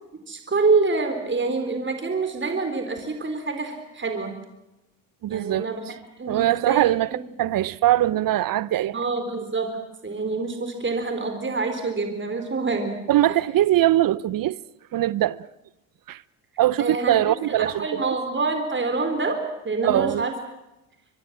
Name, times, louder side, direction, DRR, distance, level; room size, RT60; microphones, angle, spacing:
voice 1, 0.3-4.3 5.3-5.8 6.2-7.2 8.9-9.8 10.0-13.0 16.8-17.2 17.5-20.3, right 3 dB, 25° right, 4.1 m, -26 dB
voice 2, 5.2-5.7 6.3-9.0 13.1-14.6 14.9-15.4 16.1-16.2 16.6-17.9 19.8-20.3, right 13 dB, 50° right, 0.8 m, -22 dB
25.0 x 22.0 x 7.5 m
hypercardioid pair, 70°, 45 cm